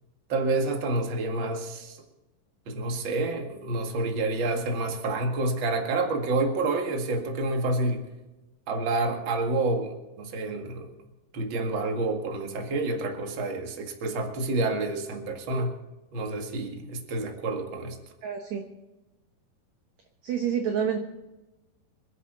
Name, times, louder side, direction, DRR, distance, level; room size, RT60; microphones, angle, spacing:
voice 1, 0.3-2.0 2.7-8.1 8.7-11.0 11.3-15.8 16.1-18.0, right 2 dB, 40° right, 3 dB, 2.1 m, -28 dB
voice 2, 18.2-18.6 20.2-21.0, right 8 dB, 60° right, 3 dB, 2.1 m, -28 dB
26.5 x 11.0 x 4.0 m, 1.1 s
omnidirectional pair, 4.4 m